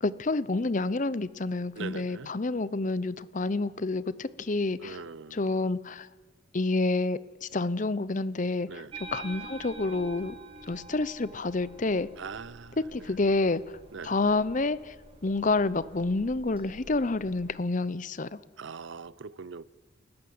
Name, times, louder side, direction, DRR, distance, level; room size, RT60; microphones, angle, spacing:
voice 1, 0.0-5.0 5.3-6.1 6.5-8.8 9.1-10.3 10.7-12.1 12.8-13.6 14.0-14.9 15.2-18.3, left 3 dB, 40° left, 0.7 m, -28 dB
voice 2, 1.8-2.3 4.8-5.4 8.7-8.9 12.2-13.1 13.9-14.1 18.6-19.6, right 5 dB, 65° right, 0.6 m, -41 dB
sound 1, 8.9-17.5, right 3 dB, 30° right, 3.7 m, -47 dB
29.5 x 15.0 x 7.8 m
head